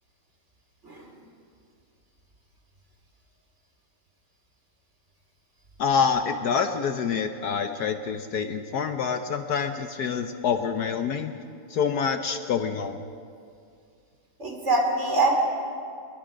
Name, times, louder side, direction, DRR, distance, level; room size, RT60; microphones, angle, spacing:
voice 1, 5.8-11.3 11.7-13.0, left 6 dB, 65° left, 8 dB, 1.3 m, -26 dB
voice 2, 14.4-15.3, right 2 dB, 40° right, 1 dB, 3.4 m, -24 dB
27.0 x 21.0 x 5.1 m, 2.4 s
omnidirectional pair, 2.0 m